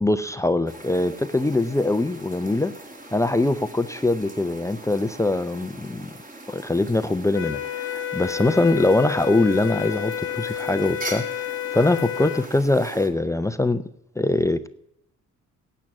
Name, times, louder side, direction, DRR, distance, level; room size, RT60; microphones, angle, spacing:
voice 1, 0.0-2.8 3.1-6.1 6.5-13.8 14.2-14.7, left 2 dB, 10° left, 12 dB, 0.6 m, -23 dB
sound 1, 0.7-13.1, right 2 dB, 25° right, 2.1 m, -41 dB
sound 2, 7.3-12.5, left 10 dB, 45° left, 1.1 m, -30 dB
9.0 x 8.9 x 8.4 m, 0.77 s
cardioid pair, 90°, 30 cm